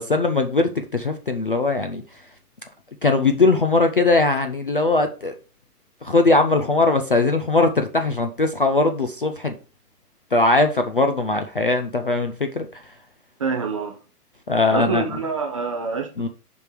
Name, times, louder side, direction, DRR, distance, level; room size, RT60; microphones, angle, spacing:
voice 1, 0.0-2.0 3.0-5.3 6.0-9.6 10.3-12.7 14.5-15.0 16.2-16.3, left 3 dB, 40° left, 0.4 m, -20 dB
voice 2, 13.4-14.0 14.7-16.3, right 4 dB, 20° right, 0.6 m, -26 dB
5.3 x 4.5 x 4.7 m
hypercardioid pair, 160°, 47 cm